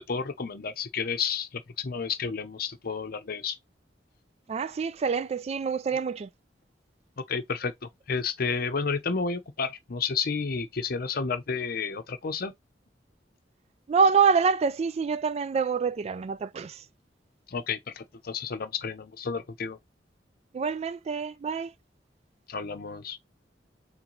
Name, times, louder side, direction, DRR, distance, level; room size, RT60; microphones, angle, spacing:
voice 1, 0.1-3.6 5.9-6.0 7.2-7.7 8.1-12.5 17.5-19.8 22.5-23.2, left 5 dB, 55° left, 0.7 m, -31 dB
voice 2, 4.5-6.3 13.9-16.8 20.5-21.7, right 5 dB, 35° right, 0.3 m, -26 dB
3.9 x 3.3 x 3.0 m
head